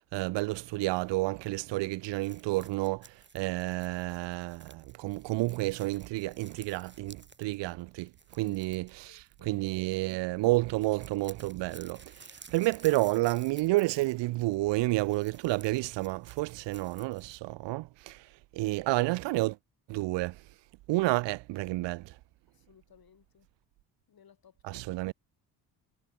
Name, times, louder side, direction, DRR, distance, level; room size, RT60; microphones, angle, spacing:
voice 1, 0.1-19.6 19.9-20.4 20.9-22.2 24.6-25.1, right 20 dB, 80° right, 0.6 m, -30 dB
sound 1, 2.2-9.8 10.1-10.2 10.5-17.4, right 4 dB, 25° right, 3.4 m, -55 dB
voice 2, 8.9-9.5 22.5-23.5 24.1-24.8, left 8 dB, 55° left, 6.8 m, -61 dB
cardioid pair, 75°, 43 cm